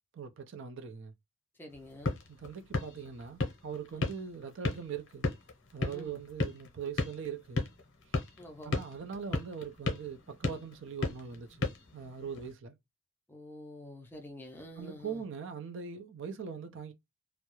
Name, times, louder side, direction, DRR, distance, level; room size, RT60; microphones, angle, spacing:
voice 1, 0.1-1.1 2.4-5.3 5.7-7.7 8.6-12.8 14.8-16.9, right 6 dB, 60° right, 0.4 m, -41 dB
voice 2, 1.5-2.2 3.9-4.1 5.9-6.2 8.4-8.8 13.3-15.2, left 1 dB, 10° left, 0.4 m, -48 dB
sound 1, 1.7-12.5, left 2 dB, 60° left, 0.6 m, -37 dB
2.2 x 2.0 x 2.9 m
head